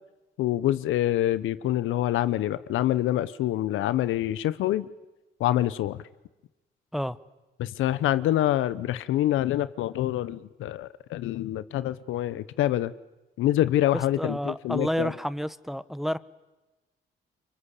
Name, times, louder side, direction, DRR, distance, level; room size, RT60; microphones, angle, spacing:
voice 1, 0.4-4.9 5.4-6.0 7.6-12.9 13.4-15.1, left 13 dB, 85° left, 16 dB, 1.0 m, -26 dB
voice 2, 14.2-16.2, equal, ahead, 15 dB, 1.1 m, -29 dB
29.0 x 24.0 x 8.4 m, 1.1 s
cardioid pair, 90°, 20 cm